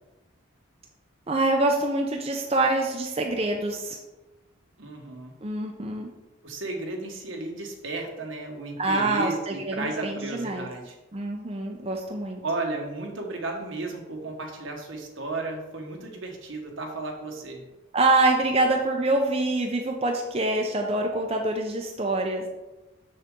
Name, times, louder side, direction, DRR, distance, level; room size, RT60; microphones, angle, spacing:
voice 1, 1.3-4.0 5.4-6.1 8.8-10.7 11.1-12.4 17.9-22.5, right 2 dB, 30° right, 2 dB, 0.6 m, -25 dB
voice 2, 4.8-5.3 6.4-11.0 12.4-17.7, right 2 dB, 75° right, 2 dB, 1.3 m, -34 dB
6.6 x 6.6 x 3.7 m, 1.1 s
head